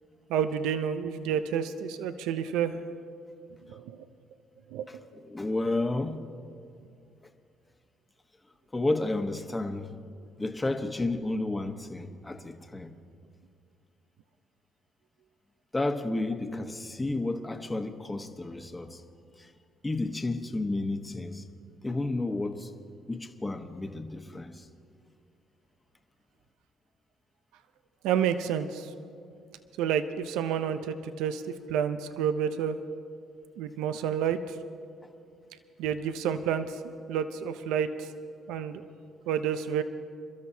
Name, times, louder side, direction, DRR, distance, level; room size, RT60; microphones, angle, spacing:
voice 1, 0.3-2.8 3.7-4.0 4.7-4.9 28.0-28.9 29.8-31.4 31.7-32.8 33.6-34.6 35.8-36.8 37.1-38.1 38.5-38.8 39.3-39.8, right 8 dB, 80° right, 10 dB, 0.6 m, -29 dB
voice 2, 5.3-6.2 8.7-10.0 10.4-12.9 15.7-19.0 19.4-19.5 19.8-21.4 21.8-22.7 23.1-24.7, left 2 dB, 20° left, 5 dB, 1.2 m, -31 dB
27.5 x 13.0 x 2.8 m, 2.4 s
supercardioid pair, 70°, 0 cm